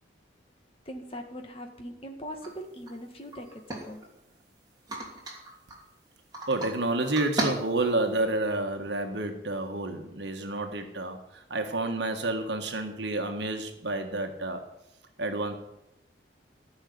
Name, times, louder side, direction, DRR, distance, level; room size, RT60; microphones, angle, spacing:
voice 1, 0.9-4.0, equal, 30° left, 4 dB, 1.8 m, -41 dB
sound 1, 2.4-2.5 2.9-3.0 3.3-4.4 4.9-5.8 6.3-6.7 7.0-8.2, right 2 dB, 20° right, 2.8 m, -35 dB
voice 2, 6.5-14.6 15.2-15.6, right 2 dB, 70° right, 4 dB, 1.5 m, -30 dB
14.5 x 6.4 x 9.5 m, 0.85 s
head